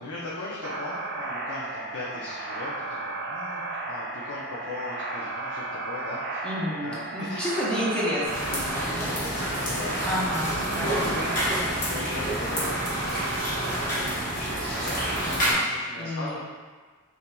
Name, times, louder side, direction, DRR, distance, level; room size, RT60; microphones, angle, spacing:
voice 1, 0.0-6.5 6.8-7.4 9.0-10.1 10.7-12.7 13.0-14.1 14.4-16.4, left 2 dB, 90° left, -7 dB, 0.7 m, -38 dB
sound 1, 0.6-15.6, right 2 dB, 60° right, 0.5 m, -34 dB
voice 2, 6.4-9.1 10.0-11.0 15.9-16.4, equal, 5° left, -7 dB, 0.8 m, -30 dB
sound 2, 8.2-15.5, equal, 40° left, 1.0 m, -29 dB
5.6 x 2.7 x 2.3 m, 1.4 s
head